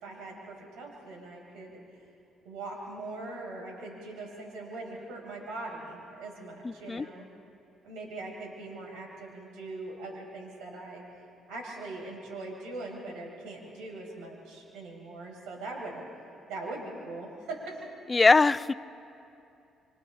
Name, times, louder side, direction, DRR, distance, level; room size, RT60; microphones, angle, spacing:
voice 1, 0.0-1.8 2.4-7.3 7.8-11.0 11.5-16.0 16.5-17.9, right 2 dB, 85° right, -1 dB, 5.4 m, -41 dB
voice 2, 6.6-7.1 18.1-18.7, left 3 dB, 25° left, 17 dB, 0.4 m, -22 dB
27.0 x 26.0 x 3.8 m, 2.7 s
cardioid pair, 80°, 0 cm